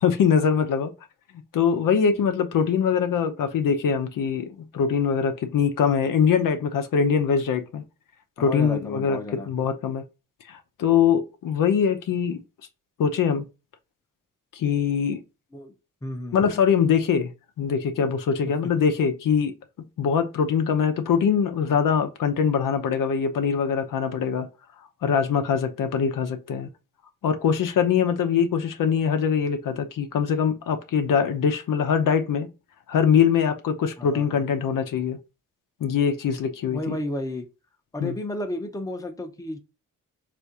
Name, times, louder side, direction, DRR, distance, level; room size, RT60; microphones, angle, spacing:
voice 1, 0.0-0.9 1.5-4.5 4.7-7.8 8.4-9.2 9.5-10.0 10.5-12.4 13.0-13.4 14.5-15.2 16.3-17.3 17.6-19.5 20.0-24.5 25.0-26.7 27.2-32.5 32.9-35.2 35.8-37.0 38.0-38.1, left 7 dB, 80° left, 0.6 m, -23 dB
voice 2, 8.4-9.5 15.5-15.7 16.0-16.6 18.4-18.6 34.0-34.4 36.7-37.4 37.9-39.6, left 1 dB, 10° left, 0.6 m, -32 dB
3.4 x 2.5 x 2.7 m
cardioid pair, 65°, 32 cm